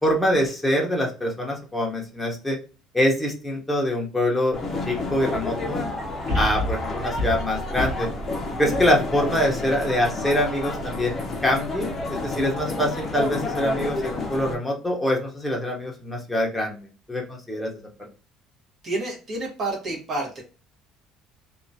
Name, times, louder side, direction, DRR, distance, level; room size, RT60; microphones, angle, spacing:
voice 1, 0.0-2.6 2.9-4.6 4.8-5.8 6.3-8.1 8.6-11.2 11.4-16.8 17.1-17.7, left 1 dB, 5° left, -1 dB, 0.9 m, -24 dB
sound 1, 4.5-14.5, left 2 dB, 30° left, 0.6 m, -30 dB
sound 2, 6.3-9.6 10.1-10.2, left 1 dB, 50° right, 1.4 m, -30 dB
voice 2, 18.8-20.4, right 2 dB, 35° right, -1 dB, 1.2 m, -29 dB
2.8 x 2.3 x 2.7 m, 0.36 s
cardioid pair, 130°, 0 cm